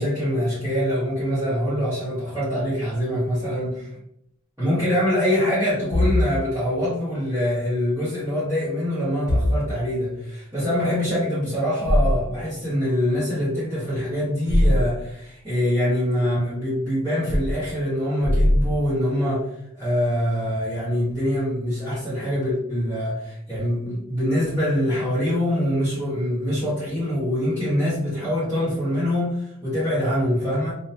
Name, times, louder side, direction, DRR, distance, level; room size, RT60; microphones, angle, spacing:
voice 1, 0.0-3.9 4.6-19.4 19.7-30.7, equal, 10° right, -14 dB, 1.2 m, -24 dB
sound 1, 5.9-6.2 9.3-9.6 11.8-12.1 14.5-14.8 17.3-17.5 18.2-18.8, left 1 dB, 50° left, 0.7 m, -19 dB
2.8 x 2.2 x 2.7 m, 0.75 s
head